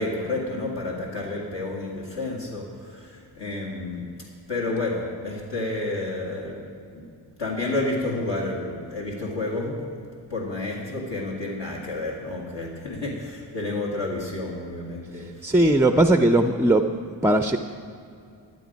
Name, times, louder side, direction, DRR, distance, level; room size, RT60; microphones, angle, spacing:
voice 1, 0.0-4.1 4.5-7.0 7.4-9.8 10.3-15.5, left 2 dB, 65° left, -3 dB, 2.1 m, -30 dB
voice 2, 15.4-16.8 17.2-17.6, right 1 dB, 5° right, 7 dB, 0.3 m, -18 dB
11.0 x 10.5 x 5.1 m, 2.4 s
cardioid pair, 75°, 46 cm